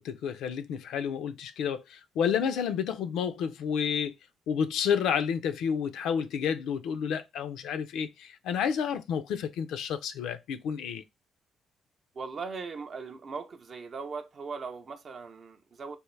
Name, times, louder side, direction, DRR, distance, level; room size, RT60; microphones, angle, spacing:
voice 1, 0.0-4.1 4.5-11.0, left 7 dB, 85° left, 0.4 m, -30 dB
voice 2, 12.1-16.0, right 4 dB, 50° right, 0.6 m, -39 dB
3.5 x 2.5 x 3.1 m
cardioid pair, 90°, 0 cm